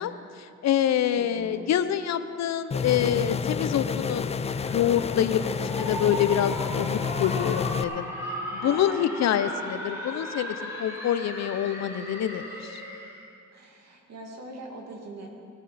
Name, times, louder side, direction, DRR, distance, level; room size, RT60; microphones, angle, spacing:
voice 1, 0.0-4.4 4.7-8.1 8.5-12.4 12.7-12.8, left 10 dB, 60° left, 12 dB, 0.7 m, -26 dB
voice 2, 1.1-1.7 8.6-9.0 13.5-15.3, right 2 dB, 60° right, 1 dB, 2.4 m, -42 dB
sound 1, 2.7-7.8, left 6 dB, 20° left, 0.4 m, -29 dB
sound 2, 4.4-13.2, equal, 10° right, 3.4 m, -36 dB
19.0 x 9.0 x 4.2 m, 2.4 s
cardioid pair, 90°, 30 cm